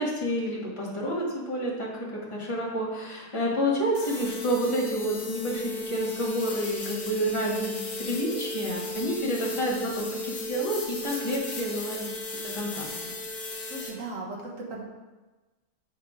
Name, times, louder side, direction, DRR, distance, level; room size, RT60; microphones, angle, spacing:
voice 1, 0.0-12.1 12.4-12.9, equal, 20° left, -5 dB, 1.4 m, -29 dB
sound 1, 3.9-13.9, left 2 dB, 70° left, 1.6 m, -35 dB
voice 2, 13.7-14.8, right 2 dB, 55° right, -1 dB, 1.4 m, -37 dB
7.7 x 3.6 x 4.9 m, 1.2 s
omnidirectional pair, 1.7 m